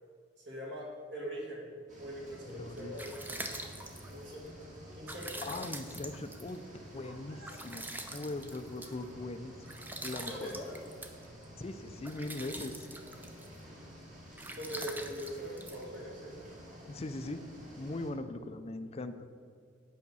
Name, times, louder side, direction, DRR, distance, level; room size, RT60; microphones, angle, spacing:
voice 1, 0.5-1.7 2.0-3.6 4.1-4.5 4.9-5.5 10.3-10.7 14.6-16.5, equal, 65° right, -3 dB, 2.4 m, -42 dB
sound 1, 1.9-18.1, equal, 45° right, 2.0 m, -51 dB
voice 2, 2.5-2.9 5.4-6.6 6.9-9.5 10.0-10.5 11.6-12.8 16.9-17.4 17.8-19.3, left 2 dB, 35° left, 10 dB, 0.5 m, -40 dB
sound 2, 2.7-16.5, right 2 dB, 10° right, 0.6 m, -46 dB
8.5 x 5.1 x 6.9 m, 2.1 s
head